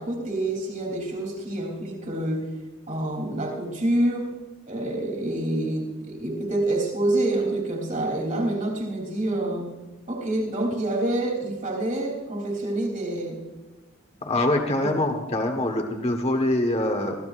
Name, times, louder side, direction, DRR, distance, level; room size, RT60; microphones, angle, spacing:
voice 1, 0.0-2.5 2.9-4.3 4.7-9.7 10.1-13.5 14.8-15.2, right 1 dB, 35° right, 1 dB, 3.5 m, -27 dB
voice 2, 14.2-17.2, left 1 dB, 30° left, 3 dB, 1.4 m, -24 dB
23.5 x 16.0 x 2.6 m, 1.2 s
head